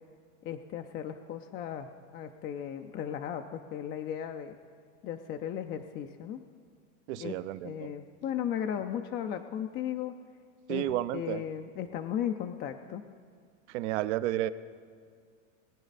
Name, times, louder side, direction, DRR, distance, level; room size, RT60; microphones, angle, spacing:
voice 1, 0.4-4.6 5.0-6.4 7.1-10.1 10.7-10.9 11.1-13.0, left 9 dB, 30° left, 6 dB, 0.4 m, -36 dB
voice 2, 7.1-7.9 10.7-11.4 13.7-14.5, right 14 dB, 65° right, 15 dB, 0.7 m, -31 dB
20.5 x 9.2 x 4.1 m, 2.1 s
supercardioid pair, 135°, 37 cm